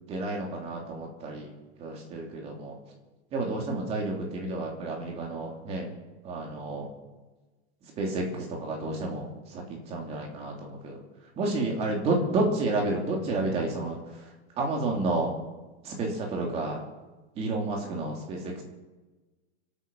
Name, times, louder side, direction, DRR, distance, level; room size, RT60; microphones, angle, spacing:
voice 1, 0.1-1.5 1.8-2.8 3.3-5.9 6.2-6.9 8.0-11.0 11.4-14.0 14.6-15.3 15.8-16.8 17.4-18.6, right 2 dB, 20° right, 0 dB, 3.0 m, -30 dB
24.5 x 9.1 x 6.2 m, 1.2 s
supercardioid pair, 175°, 33 cm